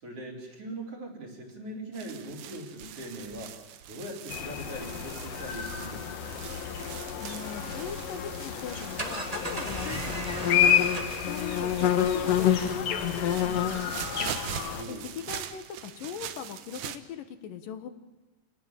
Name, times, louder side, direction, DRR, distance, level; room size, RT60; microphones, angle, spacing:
voice 1, 0.0-3.6 3.9-6.4 14.7-15.1, right 1 dB, 45° right, 0 dB, 5.1 m, -41 dB
sound 1, 1.9-17.0, right 10 dB, 70° right, 2.5 m, -43 dB
sound 2, 4.3-14.8, left 9 dB, 60° left, 2.1 m, -29 dB
voice 2, 7.2-10.8 11.2-14.3 14.9-17.9, left 8 dB, 80° left, 9 dB, 3.0 m, -40 dB
sound 3, 8.7-15.1, right 2 dB, 25° right, 0.9 m, -39 dB
29.0 x 19.0 x 7.6 m, 1.1 s
omnidirectional pair, 3.9 m